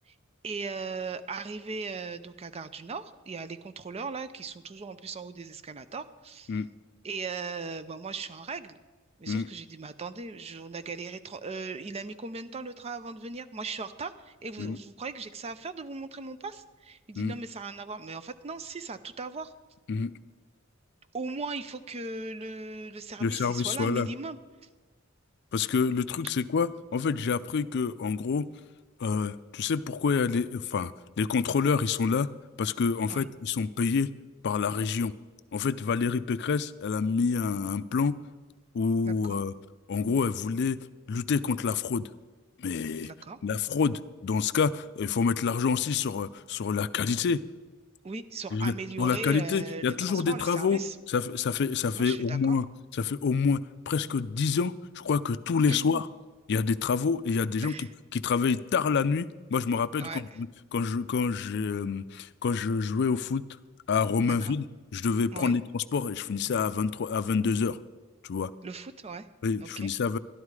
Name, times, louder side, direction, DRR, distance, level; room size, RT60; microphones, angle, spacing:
voice 1, 0.4-6.5 7.0-8.8 9.2-19.5 21.1-24.4 33.1-33.3 39.1-39.4 43.0-43.4 48.0-51.0 51.9-52.6 55.7-56.1 57.6-57.9 60.0-60.4 64.2-64.6 65.3-65.5 68.6-69.3 69.6-69.9, right 4 dB, 30° right, 12 dB, 0.5 m, -38 dB
voice 2, 23.2-24.1 25.5-28.5 29.0-32.3 32.6-34.1 34.4-35.1 35.5-38.1 38.7-39.5 39.9-40.8 41.1-42.0 42.6-43.1 43.4-47.4 48.5-50.8 51.1-52.6 52.9-56.1 56.5-57.7 58.1-60.5 60.7-63.4 63.9-64.6 64.9-67.8 68.2-68.5 69.4-70.2, left 5 dB, 55° left, 14 dB, 0.4 m, -27 dB
12.0 x 11.5 x 4.8 m, 1.3 s
head